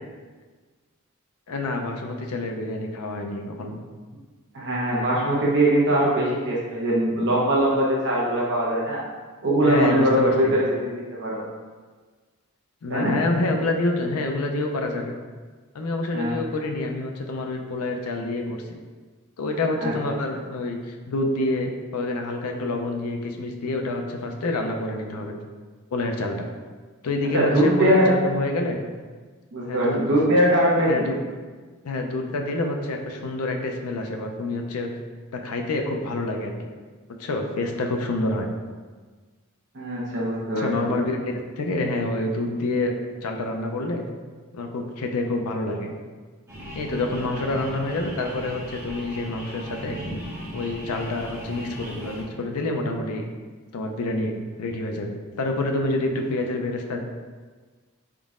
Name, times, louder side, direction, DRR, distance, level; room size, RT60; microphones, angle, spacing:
voice 1, 1.5-3.8 9.6-10.6 12.8-15.1 15.7-18.8 19.4-25.4 25.9-26.5 27.0-28.8 29.6-30.0 30.9-31.1 31.8-34.9 35.3-36.5 37.2-38.5 40.6-42.9 43.2-44.0 44.5-45.9 46.7-50.0 50.5-53.2 53.7-54.3 54.6-57.0, left 2 dB, 85° left, 3 dB, 0.5 m, -27 dB
voice 2, 4.5-9.0 9.4-11.4 12.9-13.2 16.1-16.4 19.8-20.2 27.3-28.1 29.5-31.1 39.7-40.9, right 1 dB, 55° right, -4 dB, 0.9 m, -21 dB
sound 1, 46.5-52.2, equal, 10° right, 1.0 m, -37 dB
4.0 x 3.7 x 2.4 m, 1.4 s
head